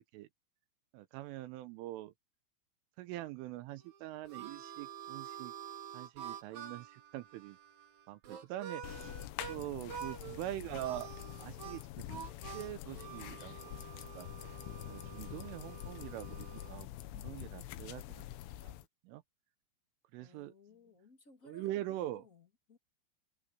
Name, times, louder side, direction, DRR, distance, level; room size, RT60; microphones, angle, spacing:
voice 1, 0.9-2.1 3.0-5.5 5.9-7.6 8.1-9.1 9.5-11.1 11.4-12.3 12.5-13.8 14.1-14.3 14.9-18.3 18.6-18.7 19.0-19.2 20.1-20.5 21.5-22.2, right 15 dB, 80° right, 3.3 m, -43 dB
Harmonica, 3.8-9.6 9.9-10.4 10.8-16.8, right 8 dB, 55° right, 2.4 m, -48 dB
sound 1, 8.8-18.8, left 14 dB, 75° left, 3.3 m, -46 dB
voice 2, 10.2-10.5 20.1-22.8, left 3 dB, 40° left, 1.1 m, -61 dB
omnidirectional pair, 6.0 m